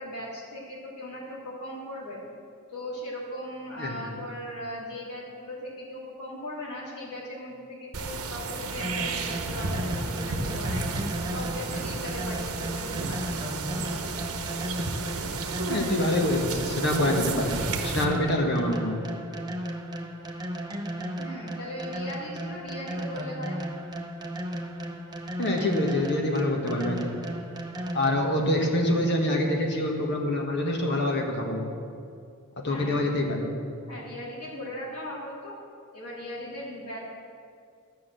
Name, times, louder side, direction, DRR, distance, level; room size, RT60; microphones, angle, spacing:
voice 1, 0.0-2.2 2.7-10.8 11.3-14.3 21.2-23.6 32.7-33.0 33.9-35.5 35.9-37.0, left 1 dB, 85° left, -5 dB, 3.0 m, -38 dB
sound 1, 7.9-18.0, right 3 dB, 70° right, 0.9 m, -32 dB
sound 2, 8.8-28.5, right 1 dB, 20° right, 0.8 m, -35 dB
voice 2, 15.7-19.0 25.4-27.2 27.9-31.7 32.6-33.5, left 1 dB, 50° left, 1 dB, 1.6 m, -26 dB
12.0 x 6.3 x 7.7 m, 2.4 s
head